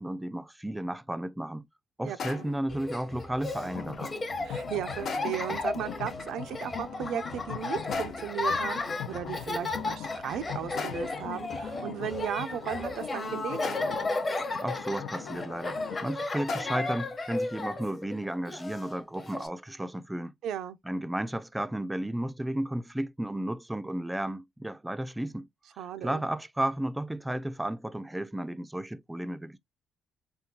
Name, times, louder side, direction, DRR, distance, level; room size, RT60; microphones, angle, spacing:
voice 1, 0.0-1.7 2.0-4.2 14.5-20.3 20.9-25.5 26.0-29.6, right 1 dB, 10° right, 0.3 m, -33 dB
voice 2, 2.0-2.5 4.4-13.8 20.4-20.8 25.8-26.2, right 9 dB, 80° right, 0.4 m, -36 dB
sound 1, 2.2-2.7 5.1-5.6 7.9-8.4 10.8-11.3 13.6-14.1 16.5-17.0, left 5 dB, 60° left, 0.8 m, -39 dB
Laughter, 2.7-19.5, left 2 dB, 30° left, 0.9 m, -34 dB
sound 2, 3.5-16.1, left 9 dB, 85° left, 0.4 m, -42 dB
3.5 x 2.3 x 2.7 m
cardioid pair, 90°, 0 cm